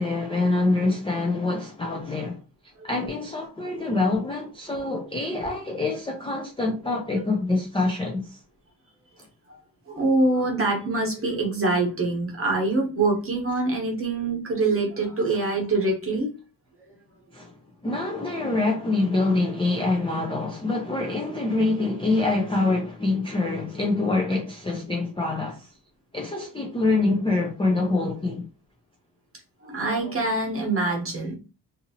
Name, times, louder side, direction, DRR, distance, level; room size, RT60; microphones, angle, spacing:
voice 1, 0.0-2.4 2.8-8.4 17.3-17.5 17.8-25.7 26.1-28.5, left 2 dB, 15° left, 0.3 m, -25 dB
voice 2, 9.9-16.3 29.6-31.3, right 2 dB, 30° right, 1.0 m, -24 dB
2.8 x 2.6 x 2.7 m
wide cardioid pair, 160°, 43 cm